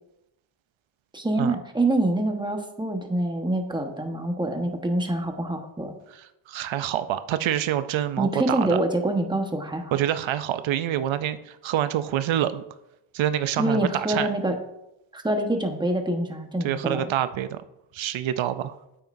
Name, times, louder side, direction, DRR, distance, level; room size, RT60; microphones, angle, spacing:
voice 1, 1.1-5.9 8.2-10.0 13.6-14.6 15.1-17.0, right 1 dB, 10° right, 4 dB, 1.2 m, -26 dB
voice 2, 6.1-8.8 9.9-12.6 13.1-14.3 16.6-17.6 17.9-18.8, right 11 dB, 90° right, 12 dB, 0.6 m, -26 dB
8.8 x 8.7 x 2.6 m, 0.87 s
cardioid pair, 85°, 45 cm